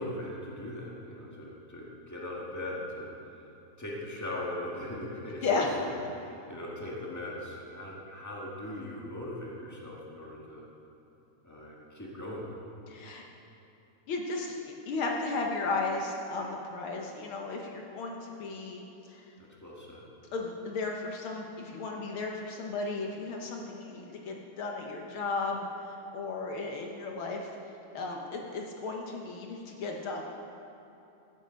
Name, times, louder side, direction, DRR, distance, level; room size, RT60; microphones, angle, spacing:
voice 1, 0.0-3.1 3.8-10.6 11.4-12.5 19.4-20.0, left 1 dB, 10° left, -5 dB, 0.7 m, -40 dB
voice 2, 12.9-13.2 14.1-19.2 20.3-27.4 27.9-30.2, left 3 dB, 70° left, 1 dB, 1.3 m, -34 dB
15.0 x 7.8 x 5.1 m, 2.9 s
omnidirectional pair, 3.4 m